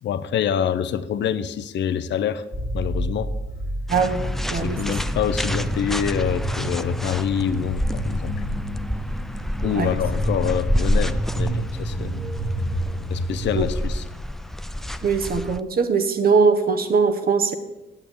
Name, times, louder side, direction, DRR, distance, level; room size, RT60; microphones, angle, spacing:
voice 1, 0.0-2.4 2.7-3.3 4.5-8.4 9.6-12.1 13.1-14.0, left 8 dB, 65° left, 13 dB, 0.6 m, -26 dB
sound 1, 2.5-13.6, right 1 dB, 15° right, 1.8 m, -30 dB
sound 2, 3.9-15.6, equal, ahead, 0.4 m, -28 dB
voice 2, 3.9-4.2 4.5-4.8 9.6-9.9 13.6-13.7 15.0-17.5, right 5 dB, 50° right, 8 dB, 1.2 m, -21 dB
8.8 x 8.3 x 7.2 m, 1.1 s
cardioid pair, 90°, 20 cm